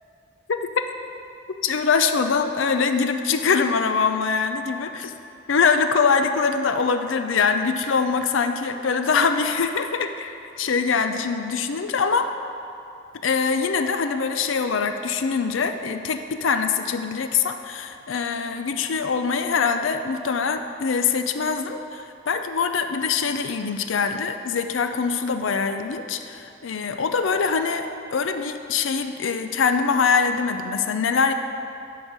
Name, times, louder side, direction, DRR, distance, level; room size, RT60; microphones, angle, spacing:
voice 1, 1.6-5.1 5.5-12.3 13.2-27.9 28.1-31.3, left 5 dB, 90° left, 7 dB, 0.5 m, -23 dB
11.0 x 4.7 x 6.7 m, 2.7 s
head